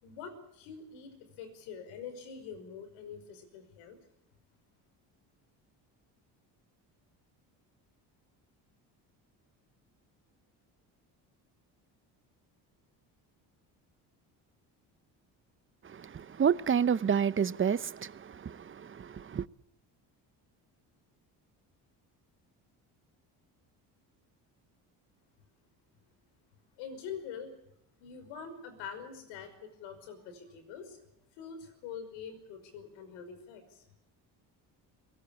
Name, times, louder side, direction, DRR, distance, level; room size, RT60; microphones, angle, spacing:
voice 1, 0.0-4.0 26.8-27.6 28.0-31.0 31.4-33.8, left 6 dB, 90° left, 5.5 m, -45 dB
voice 2, 15.8-19.5, right 7 dB, 30° right, 0.9 m, -30 dB
24.0 x 17.5 x 8.7 m
supercardioid pair, 75°, 44 cm